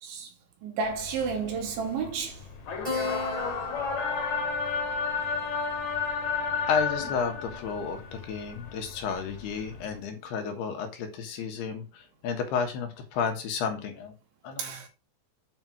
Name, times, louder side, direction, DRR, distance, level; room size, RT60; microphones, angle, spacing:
voice 1, 0.0-0.3 0.6-2.4 14.6-14.9, right 5 dB, 75° right, 4.7 m, -31 dB
sound 1, 0.8-10.0, left 5 dB, 50° left, 2.6 m, -32 dB
Keyboard (musical), 2.8-7.8, left 4 dB, 20° right, 0.8 m, -39 dB
voice 2, 6.7-14.1 14.4-14.9, left 6 dB, 65° left, 3.1 m, -32 dB
9.3 x 5.1 x 6.1 m
omnidirectional pair, 5.5 m